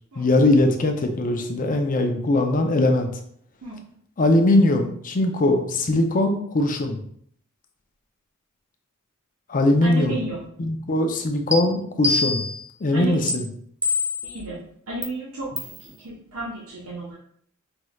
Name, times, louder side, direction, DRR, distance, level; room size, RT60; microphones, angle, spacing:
voice 1, 0.2-3.1 4.2-7.0 9.5-10.2 10.6-12.4 12.8-13.5, left 2 dB, 40° left, 4 dB, 0.5 m, -20 dB
voice 2, 9.8-10.4 12.9-13.3 14.2-14.6 14.9-17.2, right 2 dB, 85° right, -5 dB, 1.0 m, -32 dB
sound 1, 11.5-11.6 12.0-12.7 13.3-13.4 13.8-14.3 15.0-15.1 15.6-15.8, left 3 dB, 5° right, 0.5 m, -24 dB
5.2 x 3.1 x 2.3 m, 0.64 s
head